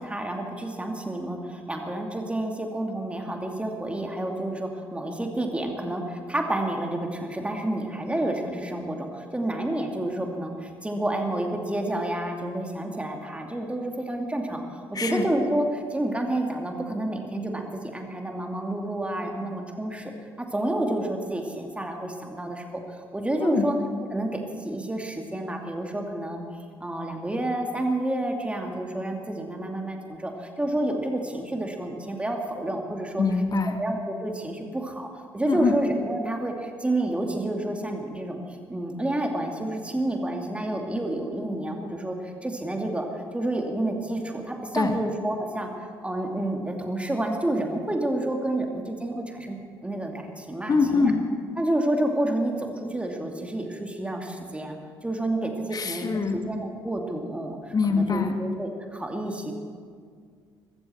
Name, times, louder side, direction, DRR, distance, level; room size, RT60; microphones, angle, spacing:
voice 1, 0.0-23.7 24.1-26.4 26.8-33.2 33.8-38.4 38.7-51.1 51.6-54.8 55.0-59.5, right 1 dB, 10° right, 2 dB, 2.5 m, -29 dB
voice 2, 14.9-15.3 23.4-23.7 33.2-33.8 35.5-35.7 44.7-45.0 50.7-51.2 55.7-56.4 57.7-58.4, left 4 dB, 30° left, 6 dB, 1.8 m, -24 dB
22.0 x 14.0 x 4.5 m, 2.1 s
figure-of-eight pair, 50°, 12 cm